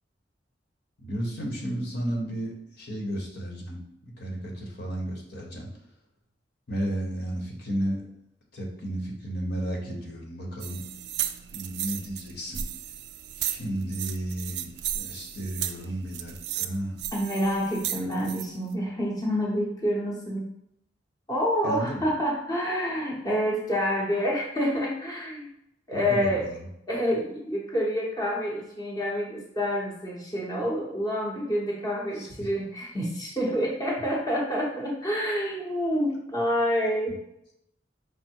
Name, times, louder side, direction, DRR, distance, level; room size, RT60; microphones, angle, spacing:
voice 1, 1.0-5.7 6.7-8.1 8.5-10.8 11.5-12.6 13.3-17.0 21.6-22.1 25.9-26.6 32.1-32.5 32.8-32.9, right 1 dB, 60° left, -1 dB, 1.2 m, -33 dB
sound 1, 10.6-18.5, right 11 dB, 65° right, 0.3 m, -35 dB
voice 2, 17.1-20.5 21.3-25.5 25.9-26.5 26.9-37.2, equal, 20° left, -4 dB, 0.8 m, -28 dB
5.1 x 2.1 x 4.5 m, 0.80 s
head